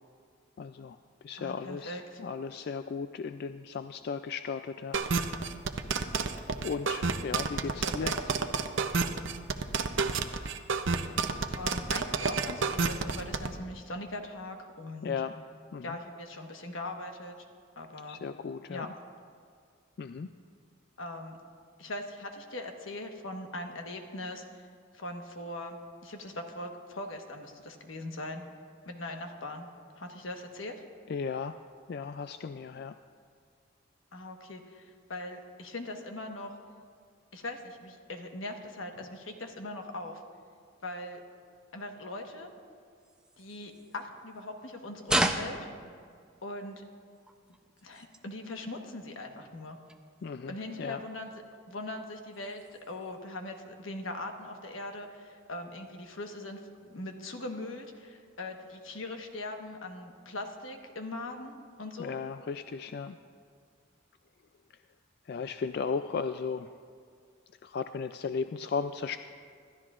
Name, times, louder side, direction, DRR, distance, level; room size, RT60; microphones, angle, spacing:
voice 1, 0.6-1.0 1.2-5.0 6.6-8.1 15.0-15.4 15.7-16.0 18.1-18.9 20.0-20.3 31.1-31.6 31.9-32.9 50.2-50.5 50.8-51.0 62.0-63.2 65.3-66.7 67.6-69.2, left 5 dB, 55° left, 10 dB, 0.3 m, -35 dB
voice 2, 1.4-2.2 7.6-8.1 11.5-15.1 15.8-17.3 17.8-18.2 18.7-18.9 21.0-21.4 21.8-24.7 24.9-28.4 28.9-29.7 30.0-30.8 34.1-36.5 37.3-40.2 40.8-41.2 41.7-42.5 43.4-45.6 46.4-46.8 47.8-49.8 50.5-51.3 51.7-62.2, left 2 dB, 85° left, 4 dB, 1.3 m, -40 dB
sound 1, 4.9-13.5, right 4 dB, 75° right, 0.7 m, -29 dB
Razorback Archery, 43.0-44.6 45.0-46.6 47.1-48.4 48.8-49.2 49.5-49.6 49.8-50.3 50.7-50.9 51.3-51.8 52.1-53.2, right 1 dB, 5° right, 0.5 m, -35 dB
26.0 x 12.5 x 2.5 m, 2.1 s
head